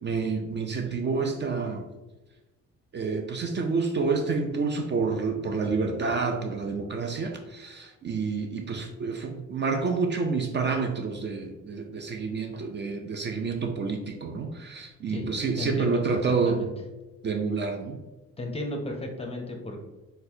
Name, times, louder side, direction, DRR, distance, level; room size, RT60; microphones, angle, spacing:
voice 1, 0.0-1.9 2.9-16.7 17.2-18.0, right 4 dB, 40° right, 3 dB, 0.4 m, -28 dB
voice 2, 15.6-16.2 16.4-16.7 18.4-19.8, left 2 dB, 20° left, 2 dB, 0.6 m, -33 dB
4.0 x 2.1 x 2.7 m, 1.1 s
cardioid pair, 90°, 30 cm